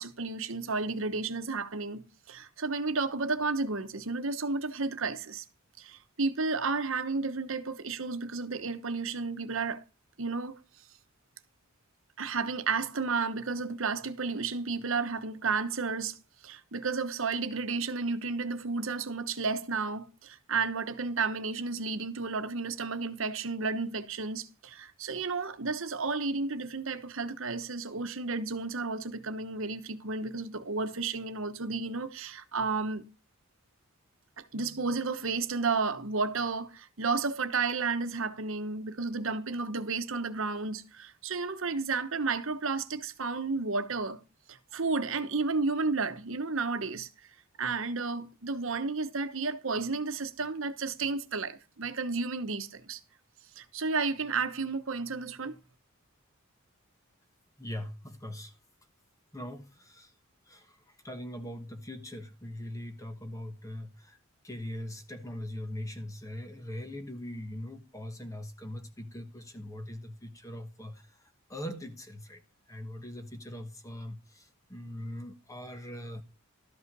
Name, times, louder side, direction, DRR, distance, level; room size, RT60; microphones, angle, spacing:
voice 1, 0.0-5.4 5.8-9.8 10.2-10.6 12.2-16.2 16.4-33.0 34.4-44.2 44.5-47.1 47.6-53.0 53.6-55.6, right 4 dB, 65° right, 1.0 m, -32 dB
voice 2, 57.6-58.5 59.3-60.1 60.5-60.6 61.0-64.2 64.4-71.0 71.5-72.4 72.7-76.2, left 1 dB, 15° left, 1.2 m, -41 dB
13.0 x 5.5 x 5.4 m
head